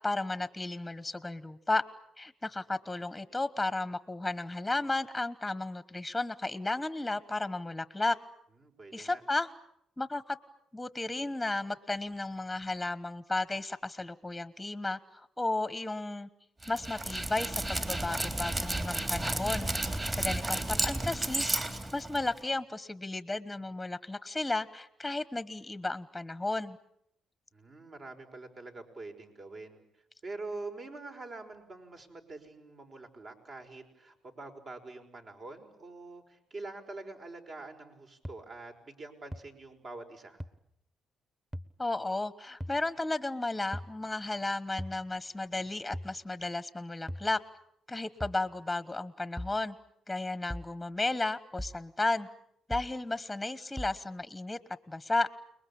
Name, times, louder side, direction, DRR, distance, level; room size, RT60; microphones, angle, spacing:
voice 1, 0.0-1.8 2.2-8.2 8.9-9.5 10.0-10.4 10.7-16.3 16.7-19.7 20.1-21.5 21.9-26.8 41.8-47.4 47.9-49.7 50.1-52.3 52.7-54.6 54.9-55.3, left 2 dB, 10° left, 14 dB, 1.2 m, -33 dB
voice 2, 8.6-9.2 27.5-29.8 30.2-40.4, right 3 dB, 50° right, 4 dB, 5.5 m, -45 dB
Dog, 16.6-22.4, right 1 dB, 25° right, 3.5 m, -32 dB
sound 1, 38.2-38.3 39.3-39.4 40.4-40.5 41.5-41.7 42.6-42.8 43.7-43.9 44.8-45.0 45.9-46.1 47.1-47.3 48.2-48.4 49.4-49.6 50.5-50.7 51.6-51.8 52.7-52.9 53.8-54.0, equal, 10° right, 1.3 m, -39 dB
29.5 x 21.0 x 8.7 m, 0.78 s
cardioid pair, 90°, 0 cm